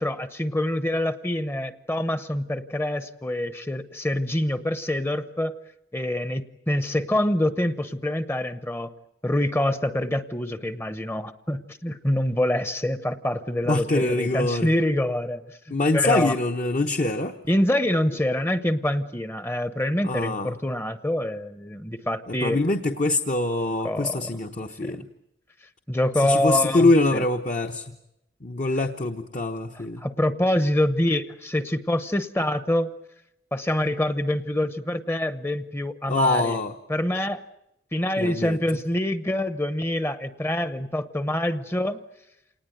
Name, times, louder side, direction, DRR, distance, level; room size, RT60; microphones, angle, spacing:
voice 1, 0.0-5.6 5.9-8.9 9.2-15.6 15.9-16.4 17.4-22.6 23.8-24.3 24.8-24.9 25.9-27.2 29.7-32.9 33.5-36.6 36.9-37.4 37.9-42.0, left 1 dB, 15° left, 13 dB, 0.9 m, -26 dB
voice 2, 13.7-14.7 15.7-17.3 20.0-20.5 22.3-25.0 26.2-27.8 28.4-30.0 36.1-36.7 38.2-38.6, left 2 dB, 45° left, 5 dB, 1.0 m, -24 dB
27.5 x 19.5 x 9.3 m, 0.85 s
head